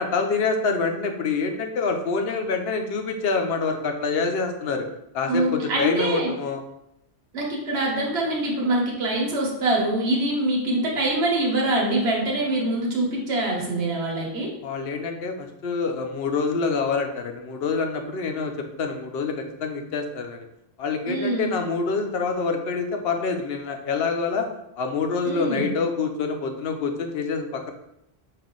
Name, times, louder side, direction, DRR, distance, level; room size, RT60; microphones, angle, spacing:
voice 1, 0.0-4.9 5.1-6.6 14.6-18.5 18.8-20.4 20.8-24.5 24.8-27.7, left 4 dB, 70° left, 5 dB, 0.8 m, -26 dB
voice 2, 5.3-6.3 7.3-14.5 21.1-21.5 25.2-25.7, right 1 dB, 80° right, -2 dB, 1.3 m, -24 dB
5.5 x 2.5 x 3.7 m, 0.82 s
omnidirectional pair, 1.1 m